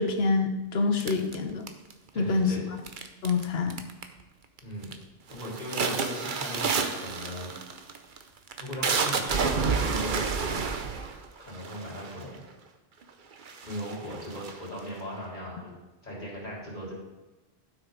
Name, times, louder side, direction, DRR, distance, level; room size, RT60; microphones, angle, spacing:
voice 1, 0.0-1.7 2.2-2.5 3.2-3.8, left 4 dB, 75° left, 6 dB, 1.2 m, -26 dB
sound 1, 1.0-2.1 2.9-3.4 3.7-4.2 4.6-5.0 5.3-12.4 13.0-13.1 13.4-15.0, right 5 dB, 55° right, 0.9 m, -30 dB
voice 2, 2.1-2.7 4.6-4.9 5.3-7.5 8.6-10.8 11.4-12.5 13.6-15.7 16.0-16.9, equal, 45° left, -6 dB, 3.7 m, -37 dB
12.0 x 6.5 x 3.9 m, 1.1 s
omnidirectional pair, 1.1 m